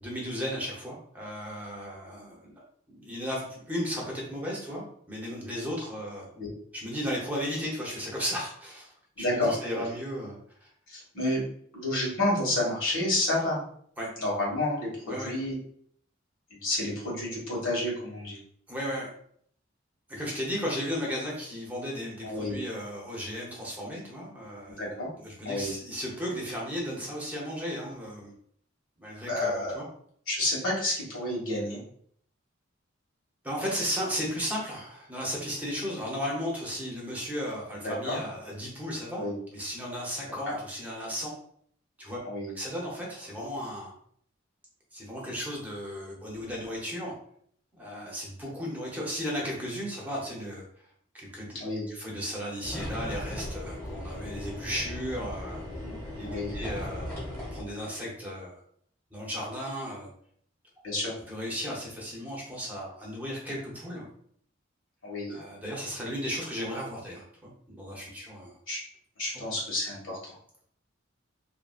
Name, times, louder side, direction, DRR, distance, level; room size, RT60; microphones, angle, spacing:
voice 1, 0.0-6.2 6.8-8.9 9.3-10.4 14.0-14.1 15.1-15.3 18.7-19.1 20.1-24.8 25.2-28.3 29.0-29.8 33.4-39.2 39.5-41.3 42.0-42.2 42.5-43.9 44.9-47.1 47.8-50.6 51.1-51.6 51.9-55.6 56.2-58.6 59.1-60.1 61.3-64.1 65.3-68.5, equal, 10° right, -4 dB, 0.8 m, -35 dB
voice 2, 9.2-9.6 10.9-11.4 11.7-13.6 14.2-15.5 16.6-18.4 22.2-22.6 24.7-25.1 25.4-25.7 29.3-29.8 30.3-31.8 37.8-38.2 39.1-39.3 40.5-40.6 42.2-42.5 51.5-51.8 55.8-55.9 56.2-56.6 60.8-61.1 65.0-65.4 68.7-68.8 69.2-70.3, left 1 dB, 85° left, -4 dB, 1.5 m, -30 dB
sound 1, 52.6-57.6, left 1 dB, 10° left, 1.1 m, -37 dB
2.8 x 2.6 x 2.4 m, 0.63 s
head